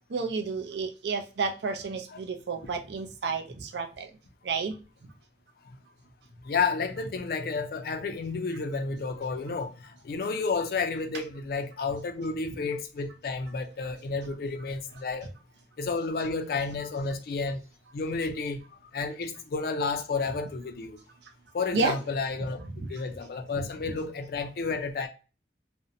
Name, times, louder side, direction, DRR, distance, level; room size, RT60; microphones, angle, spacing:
voice 1, 0.1-4.1 4.4-4.7 21.7-21.9 22.7-22.9, right 4 dB, 75° right, 0.4 m, -31 dB
voice 2, 6.4-15.3 15.8-17.6 17.9-18.6 18.9-21.0 21.5-25.1, left 4 dB, 55° left, 0.4 m, -31 dB
2.5 x 2.0 x 2.6 m
head